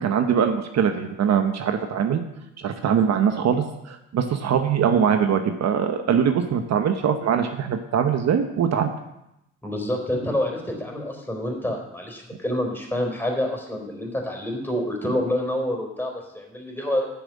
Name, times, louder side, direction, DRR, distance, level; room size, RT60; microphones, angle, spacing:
voice 1, 0.0-2.2 2.6-8.9, right 7 dB, 60° right, 6 dB, 1.0 m, -22 dB
voice 2, 9.6-17.1, left 1 dB, 5° left, 1 dB, 3.8 m, -27 dB
9.4 x 7.1 x 7.5 m, 0.85 s
cardioid pair, 90°, 30 cm